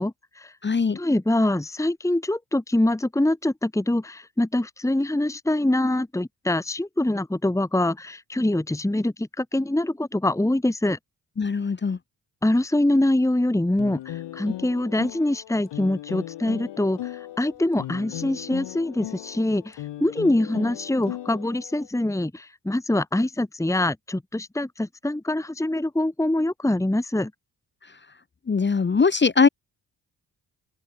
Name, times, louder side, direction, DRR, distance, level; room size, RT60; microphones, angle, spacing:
voice 1, 0.0-0.5 0.9-11.0 12.4-27.3, left 1 dB, 5° left, 1.5 m, -24 dB
voice 2, 0.6-1.0 11.4-12.0 28.5-29.5, left 5 dB, 25° left, 0.9 m, -21 dB
sound 1, 13.8-21.9, left 13 dB, 90° left, 2.9 m, -37 dB
open air
supercardioid pair, 55°, 42 cm